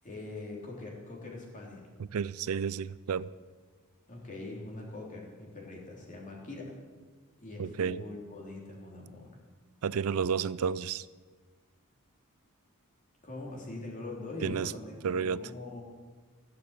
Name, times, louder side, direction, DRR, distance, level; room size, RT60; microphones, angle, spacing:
voice 1, 0.0-2.0 4.1-6.7 7.4-9.3 13.2-15.8, left 2 dB, 35° left, -2 dB, 3.3 m, -43 dB
voice 2, 2.0-3.3 7.6-8.0 9.8-11.1 14.4-14.7 15.0-15.4, right 6 dB, 70° right, 18 dB, 0.4 m, -31 dB
16.0 x 7.0 x 8.2 m, 1.4 s
head